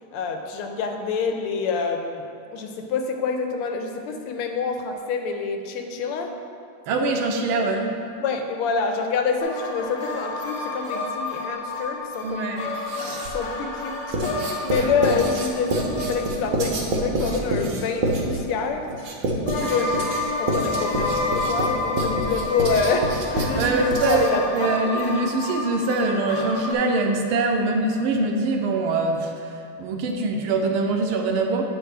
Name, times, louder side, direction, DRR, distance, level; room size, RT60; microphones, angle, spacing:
voice 1, 0.1-2.3 2.5-6.3 8.1-12.7 13.0-18.9 19.7-20.1 20.4-25.1, left 5 dB, 85° left, 4 dB, 1.6 m, -27 dB
voice 2, 6.9-8.0 12.2-12.6 19.6-19.7 23.6-24.2 24.5-29.3 29.8-31.6, right 3 dB, 80° right, 3 dB, 1.4 m, -23 dB
sound 1, 9.4-18.0 19.5-26.7, left 2 dB, 55° left, 0.9 m, -30 dB
Writing, 12.7-13.5 14.1-24.4, right 1 dB, 60° right, 0.9 m, -27 dB
8.7 x 5.2 x 3.3 m, 2.5 s
omnidirectional pair, 2.4 m